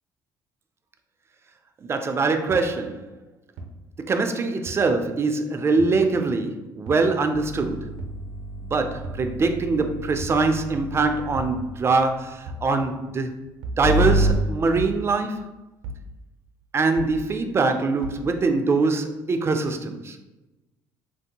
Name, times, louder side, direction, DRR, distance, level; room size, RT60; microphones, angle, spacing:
voice 1, 1.8-3.1 4.0-7.9 8.7-13.3 13.8-15.4 16.7-20.2, right 3 dB, 30° right, 7 dB, 0.4 m, -23 dB
sound 1, 2.5-2.6 3.6-3.7 4.7-4.8 5.8-5.9 6.9-7.0 8.0-8.2 9.0-9.3 10.2-10.4 11.3-11.6 12.5-12.7 13.6-13.8 14.8-15.0 15.8-16.1 17.0-17.2 18.0-18.2, right 2 dB, 80° right, 0.5 m, -35 dB
sound 2, 7.3-11.7 13.8-14.3, right 1 dB, 35° left, 0.5 m, -28 dB
3.1 x 2.6 x 2.7 m, 1.0 s
supercardioid pair, 85°, 8 cm